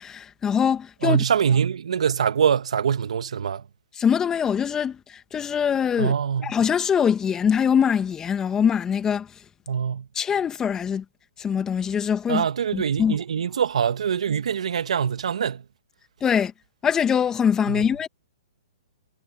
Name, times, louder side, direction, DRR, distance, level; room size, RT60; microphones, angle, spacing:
voice 1, 0.0-1.2 4.0-6.1 6.4-9.3 10.2-11.0 11.4-12.5 12.7-13.2 16.2-16.5 16.8-18.1, left 7 dB, 15° left, 2.0 m, -23 dB
voice 2, 1.0-3.6 6.0-6.6 9.7-10.1 12.3-15.6 17.7-17.8, right 7 dB, 70° right, 2.2 m, -24 dB
hypercardioid pair, 135°, 4 cm